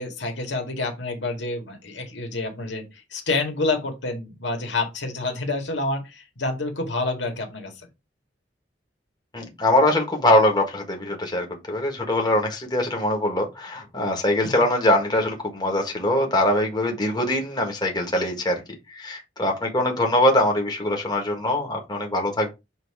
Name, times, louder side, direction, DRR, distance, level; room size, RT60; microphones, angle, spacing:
voice 1, 0.0-7.7, left 3 dB, 85° left, 2.0 m, -28 dB
voice 2, 9.3-18.6 18.9-22.5, left 1 dB, 25° left, 1.6 m, -22 dB
7.9 x 2.8 x 4.8 m
head